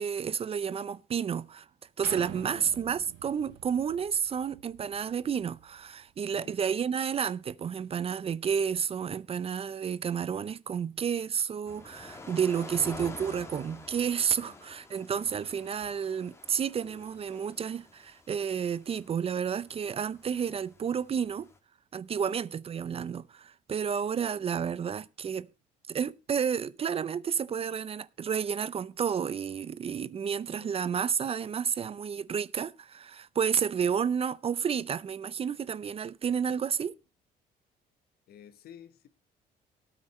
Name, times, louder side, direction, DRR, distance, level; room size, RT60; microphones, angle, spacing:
voice 1, 0.0-1.7 2.0-21.5 21.9-25.5 25.9-36.9, right 7 dB, 35° right, 0.6 m, -31 dB
sound 1, 2.0-5.8 6.3-6.4, right 16 dB, 90° right, 0.6 m, -47 dB
voice 2, 2.3-2.7 6.3-6.6 14.4-14.6 22.2-22.4 30.5-30.7 38.3-39.1, left 9 dB, 65° left, 1.4 m, -52 dB
sound 2, 11.7-21.6, left 2 dB, 15° left, 2.1 m, -48 dB
18.5 x 8.9 x 3.1 m
cardioid pair, 110°, 17 cm